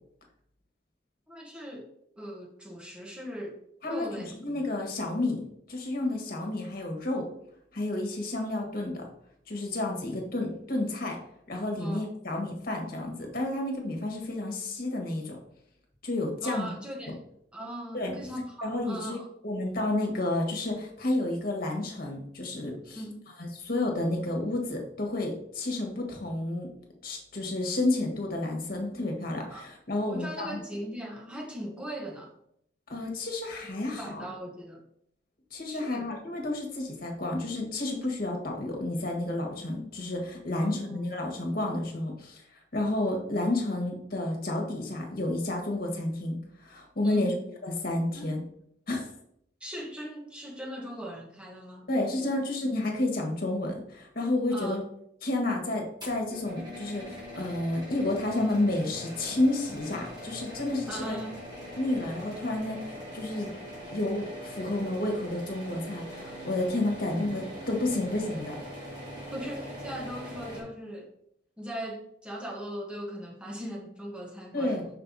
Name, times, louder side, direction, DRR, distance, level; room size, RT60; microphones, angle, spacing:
voice 1, 1.3-1.9 2.2-4.3 11.8-12.1 16.4-17.2 17.5-19.3 22.9-23.2 29.5-29.6 30.1-32.3 33.8-34.8 35.7-36.1 40.5-41.0 47.0-47.4 48.1-48.3 49.6-51.9 52.2-52.3 54.5-54.8 60.9-61.4 69.3-71.1 71.6-74.8, equal, 5° right, 0 dB, 1.2 m, -39 dB
voice 2, 3.8-7.3 7.7-9.0 9.5-11.2 11.5-15.4 16.0-16.7 17.1-17.2 17.9-18.1 18.6-19.2 19.4-23.0 23.4-26.7 27.0-30.6 32.9-34.2 35.5-47.3 47.6-48.4 48.9-49.1 51.9-54.8 55.2-61.2 61.8-63.5 63.9-68.6 74.5-74.9, left 2 dB, 50° left, 1 dB, 1.6 m, -31 dB
sound 1, 56.0-70.6, equal, 20° right, 2.4 m, -42 dB
5.6 x 5.5 x 4.1 m, 0.72 s
head